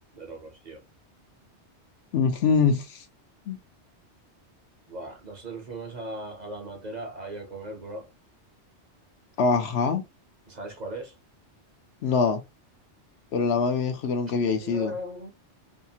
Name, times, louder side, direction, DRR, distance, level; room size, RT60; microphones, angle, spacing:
voice 1, 0.1-0.8 4.9-8.1 10.5-11.1 14.4-15.3, right 1 dB, 45° right, 0.7 m, -38 dB
voice 2, 2.1-3.0 3.5-3.6 9.4-10.0 12.0-12.4 13.3-14.9, left 5 dB, 70° left, 0.8 m, -24 dB
2.8 x 2.4 x 2.7 m
omnidirectional pair, 1.2 m